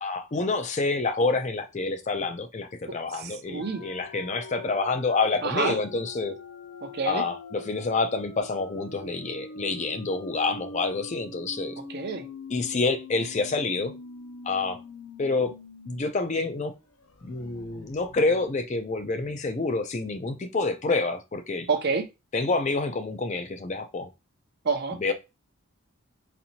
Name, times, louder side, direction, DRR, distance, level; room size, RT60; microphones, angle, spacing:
voice 1, 0.0-6.4 7.1-11.8 12.5-13.9 14.4-14.8 15.2-15.6 15.9-16.7 17.2-21.7 22.3-24.1 25.0-25.1, left 3 dB, 30° left, 0.4 m, -28 dB
voice 2, 3.1-3.9 5.4-5.8 6.8-7.2 11.9-12.3 21.7-22.1 24.6-25.0, right 4 dB, 45° right, 0.5 m, -28 dB
sound 1, 3.6-16.1 16.4-16.5 16.9-19.6, left 2 dB, 75° left, 0.8 m, -44 dB
4.1 x 2.6 x 2.8 m
head